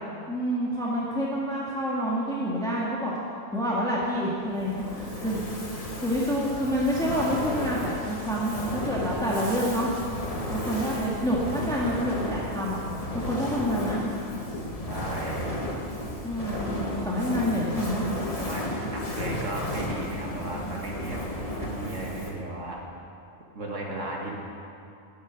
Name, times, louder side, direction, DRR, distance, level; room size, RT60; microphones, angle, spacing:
voice 1, 0.3-3.2 3.5-9.9 10.5-12.8 13.1-14.0 16.2-16.8 17.1-18.1, equal, 5° left, -6 dB, 1.9 m, -28 dB
Fire, 4.5-22.5, left 1 dB, 30° left, 1.5 m, -33 dB
voice 2, 14.9-15.4 16.5-16.6 18.4-22.8 23.6-24.3, right 1 dB, 70° right, -2 dB, 2.3 m, -35 dB
13.5 x 8.8 x 9.2 m, 2.6 s
omnidirectional pair, 1.3 m